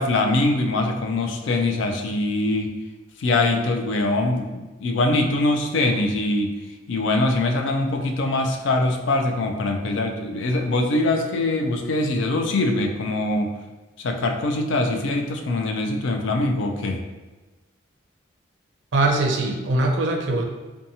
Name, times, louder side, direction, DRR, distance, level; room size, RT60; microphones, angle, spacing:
voice 1, 0.0-2.8 3.2-6.6 6.9-13.6 14.0-17.0, left 2 dB, 85° left, 4 dB, 0.4 m, -23 dB
voice 2, 18.9-20.4, right 2 dB, 80° right, 3 dB, 0.4 m, -21 dB
2.7 x 2.2 x 2.7 m, 1.2 s
head